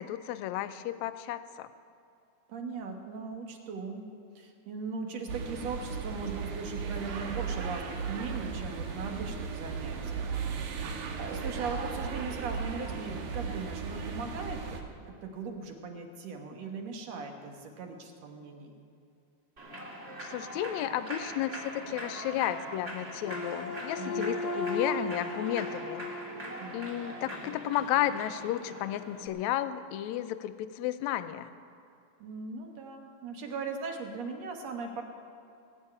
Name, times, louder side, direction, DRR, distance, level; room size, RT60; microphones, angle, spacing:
voice 1, 0.0-1.7 20.2-26.0 26.7-31.5, left 12 dB, 75° left, 12 dB, 1.8 m, -33 dB
voice 2, 2.5-4.1 4.4-10.3 10.6-18.8 24.0-24.4 26.6-26.9 32.2-35.0, right 4 dB, 65° right, 3 dB, 2.2 m, -39 dB
sound 1, 5.3-14.8, right 6 dB, 80° right, 2.7 m, -36 dB
Human voice / Clapping / Cheering, 19.6-29.3, right 1 dB, 25° right, 1.6 m, -42 dB
sound 2, 23.2-27.5, left 2 dB, 60° left, 1.3 m, -36 dB
19.0 x 6.4 x 9.6 m, 2.6 s
omnidirectional pair, 3.6 m